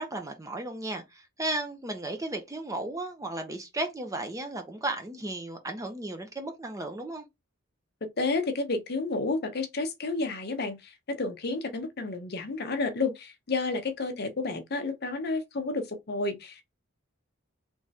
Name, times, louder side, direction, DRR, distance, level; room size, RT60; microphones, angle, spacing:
voice 1, 0.0-7.2, right 2 dB, 15° right, 0.6 m, -34 dB
voice 2, 8.0-16.6, left 3 dB, 50° left, 0.7 m, -31 dB
3.5 x 3.0 x 2.7 m
head